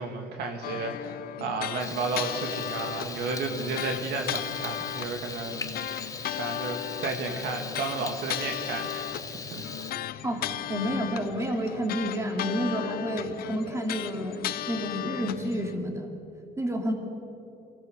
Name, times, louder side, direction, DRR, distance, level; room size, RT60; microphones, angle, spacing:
voice 1, 0.0-6.0 6.4-9.1 9.5-9.9, right 3 dB, 75° right, 4 dB, 2.2 m, -33 dB
sound 1, 0.6-15.8, left 12 dB, 60° left, 0.7 m, -36 dB
Frying (food), 1.8-9.9, left 4 dB, 20° left, 1.1 m, -40 dB
voice 2, 10.7-14.4 14.7-16.1 16.6-16.9, equal, 15° right, 3 dB, 2.7 m, -30 dB
24.0 x 17.0 x 6.7 m, 2.9 s
cardioid pair, 110°, 17 cm